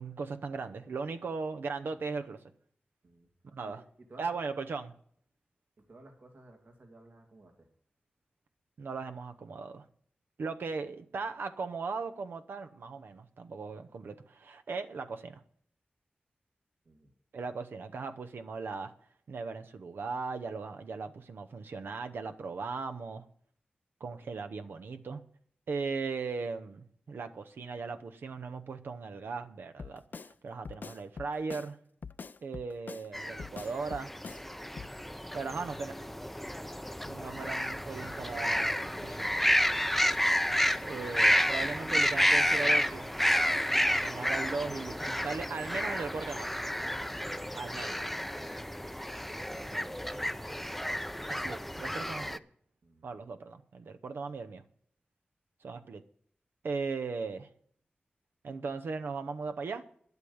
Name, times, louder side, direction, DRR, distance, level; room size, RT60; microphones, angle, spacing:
voice 1, 0.0-2.4 3.5-3.8 4.2-4.9 8.8-9.9 10.4-15.4 17.3-18.9 19.3-23.3 24.0-25.2 25.7-31.8 32.4-34.1 35.3-35.9 37.1-39.3 40.8-43.1 43.9-46.6 47.5-48.0 51.3-52.4 53.0-54.6 55.6-56.0 56.6-57.5 58.4-59.8, right 4 dB, 85° right, 0.8 m, -38 dB
voice 2, 3.6-4.6 5.8-7.7 16.8-17.1 35.2-36.2 49.3-50.7 52.8-53.2, right 2 dB, 70° right, 2.3 m, -56 dB
Drum kit, 29.8-30.3 30.6-31.7 32.0-33.1 33.4-34.4 34.8-34.9, left 5 dB, 60° left, 0.4 m, -44 dB
sound 1, 33.1-52.4, equal, 5° left, 0.5 m, -30 dB
10.5 x 8.2 x 7.0 m
cardioid pair, 60°, 4 cm